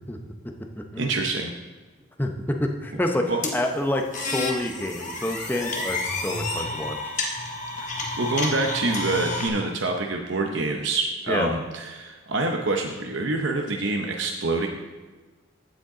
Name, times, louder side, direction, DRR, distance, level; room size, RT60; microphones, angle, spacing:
voice 1, 1.0-1.5 3.3-3.4 7.8-7.9 8.2-14.7, right 2 dB, 65° right, 2 dB, 0.7 m, -26 dB
voice 2, 2.2-3.2 3.5-7.1 11.3-11.5, left 1 dB, 10° left, 2 dB, 0.7 m, -28 dB
sound 1, 3.4-9.5, left 2 dB, 40° left, 1.2 m, -30 dB
15.0 x 5.1 x 3.8 m, 1.3 s
head